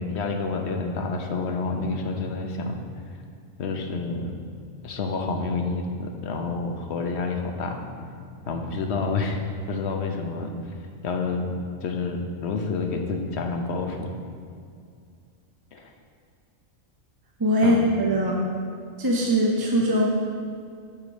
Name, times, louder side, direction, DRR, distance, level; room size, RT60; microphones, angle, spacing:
voice 1, 0.0-2.8 3.6-4.3 4.8-8.1 8.5-9.4 9.7-10.5 11.0-11.5 11.8-14.1 15.7-15.9 17.6-17.8, left 4 dB, 60° left, 3 dB, 1.0 m, -28 dB
voice 2, 17.4-18.4 19.0-20.1, equal, 25° right, -2 dB, 0.6 m, -21 dB
7.3 x 5.1 x 6.3 m, 2.3 s
omnidirectional pair, 1.4 m